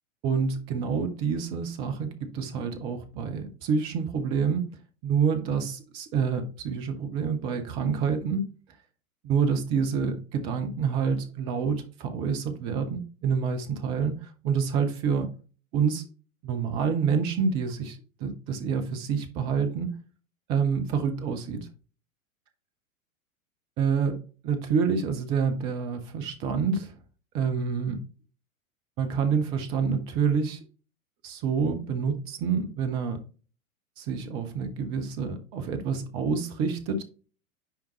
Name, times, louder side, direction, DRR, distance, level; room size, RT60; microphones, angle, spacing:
voice 1, 0.2-4.7 5.0-8.4 9.2-15.3 15.7-16.0 16.4-20.0 20.5-21.7 23.8-27.0 27.3-28.0 29.0-30.6 31.2-33.2 34.0-37.0, right 6 dB, 15° right, 0.4 m, -27 dB
10.0 x 3.4 x 2.9 m
figure-of-eight pair, 100°, 42 cm